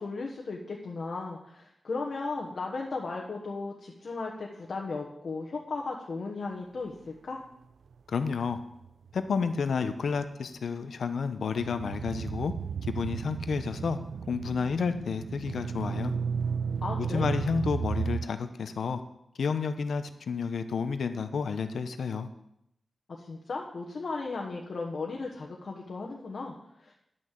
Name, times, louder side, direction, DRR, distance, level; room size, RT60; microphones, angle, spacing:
voice 1, 0.0-7.4 16.8-17.4 23.2-26.9, left 3 dB, 55° left, -1 dB, 1.2 m, -36 dB
voice 2, 8.1-8.6 9.1-12.5 12.8-14.0 14.3-16.1 17.0-19.0 19.4-22.3, left 5 dB, 80° left, 10 dB, 0.9 m, -30 dB
sound 1, 8.5-9.6 11.6-18.3, right 6 dB, 85° right, 0.3 m, -34 dB
10.5 x 6.6 x 7.5 m, 0.79 s
wide cardioid pair, 145°, 0 cm